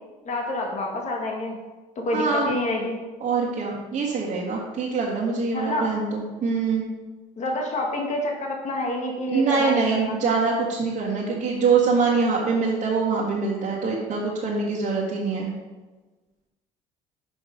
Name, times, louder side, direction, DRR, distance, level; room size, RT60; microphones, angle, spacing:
voice 1, 0.2-1.6 1.9-3.0 5.5-5.9 7.4-10.2, left 1 dB, 45° left, 0 dB, 1.6 m, -28 dB
voice 2, 2.1-2.5 3.2-6.8 9.3-15.5, right 4 dB, 55° right, -6 dB, 1.8 m, -24 dB
6.8 x 5.3 x 5.2 m, 1.2 s
supercardioid pair, 80°, 17 cm